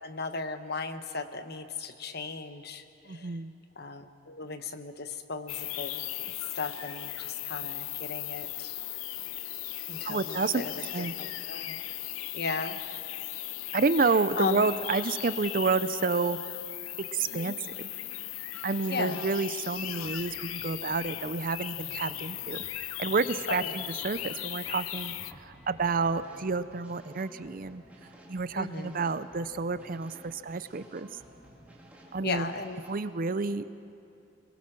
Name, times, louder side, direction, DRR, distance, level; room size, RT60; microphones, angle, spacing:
voice 1, 0.0-3.4 3.8-6.0 6.5-8.8 9.9-11.8 12.3-12.8 14.4-14.7 17.3-17.6 18.9-19.2 23.5-23.7 28.5-29.0 32.2-32.8, left 4 dB, 50° left, 9 dB, 1.0 m, -36 dB
voice 2, 3.1-3.5 10.0-10.6 10.9-11.1 13.7-16.4 17.1-17.5 18.6-22.6 23.0-25.1 25.4-27.8 28.3-31.1 32.1-32.5 32.9-33.8, right 4 dB, 40° right, 14 dB, 0.5 m, -29 dB
sound 1, 5.5-25.3, left 14 dB, 80° left, 0.5 m, -37 dB
sound 2, 19.8-26.4, equal, 10° left, 3.6 m, -55 dB
sound 3, 25.5-33.1, right 1 dB, 5° right, 2.4 m, -54 dB
26.0 x 21.0 x 6.1 m, 2.8 s
head